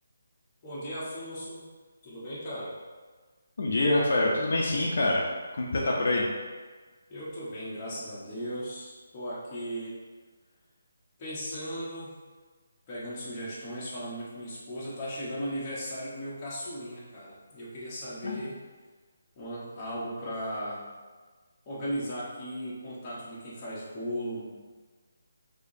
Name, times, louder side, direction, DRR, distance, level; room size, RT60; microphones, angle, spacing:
voice 1, 0.6-1.7 2.0-2.8 7.1-10.0 11.2-12.2 12.9-18.6 19.4-20.8 21.7-24.5, equal, 20° left, -9 dB, 0.9 m, -37 dB
voice 2, 3.6-5.2 5.6-6.3 18.2-18.4, left 2 dB, 55° left, -3 dB, 0.6 m, -25 dB
4.4 x 2.8 x 2.6 m, 1.4 s
hypercardioid pair, 175°, 0 cm